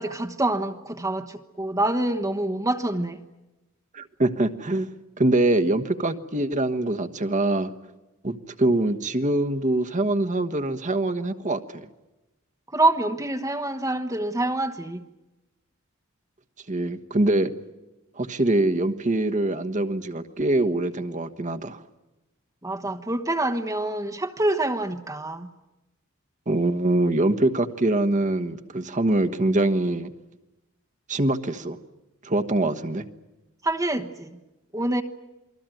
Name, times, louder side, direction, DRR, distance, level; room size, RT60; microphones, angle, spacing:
voice 1, 0.0-3.2 12.7-15.0 22.6-25.5 33.6-34.4 34.7-35.0, right 2 dB, 15° right, 4 dB, 1.2 m, -26 dB
voice 2, 3.9-4.9 5.2-7.7 8.2-11.9 16.7-17.5 18.2-21.8 26.5-30.1 31.1-31.8 32.2-33.0, right 2 dB, 35° right, 7 dB, 1.3 m, -24 dB
28.5 x 21.0 x 9.1 m, 1.0 s
head